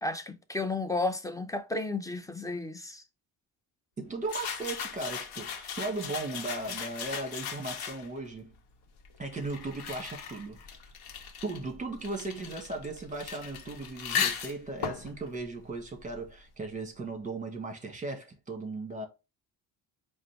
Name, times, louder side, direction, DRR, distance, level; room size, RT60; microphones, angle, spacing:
voice 1, 0.0-3.0, left 2 dB, 10° left, 0.5 m, -33 dB
voice 2, 4.0-8.5 9.2-10.6 11.4-19.1, right 3 dB, 20° right, 1.4 m, -37 dB
sound 1, 4.3-8.3 9.0-16.5, left 7 dB, 75° left, 0.9 m, -37 dB
4.8 x 2.1 x 4.3 m
cardioid pair, 105°, 39 cm